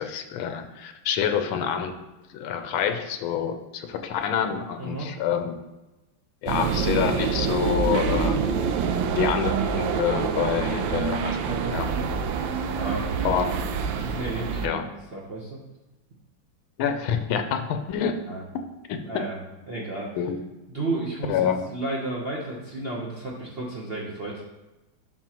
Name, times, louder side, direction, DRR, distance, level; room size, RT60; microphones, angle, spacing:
voice 1, 0.0-1.9 2.3-5.6 6.4-8.6 9.1-11.9 13.2-13.6 14.6-14.9 16.8-18.2 18.9-19.2 20.2-20.4 21.3-21.6, left 8 dB, 90° left, 7 dB, 1.5 m, -27 dB
voice 2, 4.8-5.1 11.4-11.8 12.7-13.1 14.0-15.6 18.3-18.4 19.0-19.4 19.7-20.1 20.7-21.4 21.7-24.4, right 2 dB, 45° right, -4 dB, 0.8 m, -32 dB
sound 1, 6.5-14.7, right 6 dB, 80° right, 1.3 m, -26 dB
11.5 x 4.5 x 3.0 m, 1.0 s
omnidirectional pair, 2.2 m